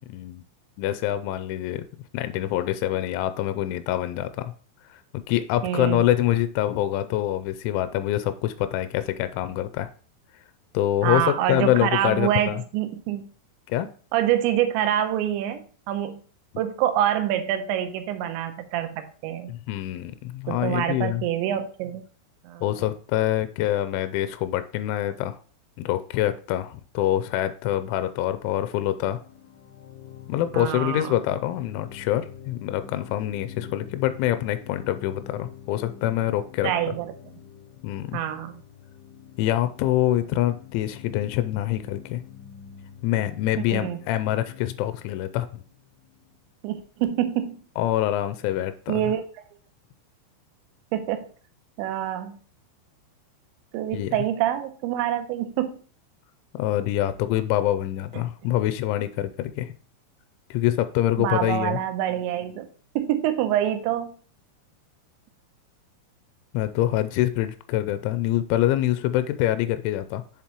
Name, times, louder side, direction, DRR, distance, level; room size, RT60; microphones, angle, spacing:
voice 1, 0.1-0.4 0.8-1.8 2.1-4.5 4.9-9.9 10.7-12.6 13.7-13.9 19.5-21.2 22.6-25.4 25.8-29.2 30.3-37.0 37.8-38.2 39.4-42.2 43.0-45.6 47.8-49.1 53.9-54.2 56.5-59.7 60.5-61.8 66.5-70.2, left 13 dB, 90° left, 11 dB, 3.0 m, -25 dB
voice 2, 5.6-6.0 11.0-13.3 14.1-16.2 16.6-19.5 20.5-22.0 22.4-22.6 30.5-31.2 36.6-37.1 38.1-38.6 43.7-44.0 46.6-47.6 48.9-49.2 50.9-51.3 51.8-52.4 53.7-55.8 61.2-62.7 63.0-64.1, right 11 dB, 85° right, 8 dB, 3.0 m, -26 dB
sound 1, 28.8-46.4, left 9 dB, 70° left, 3.4 m, -46 dB
7.2 x 7.1 x 3.0 m, 0.41 s
omnidirectional pair, 5.4 m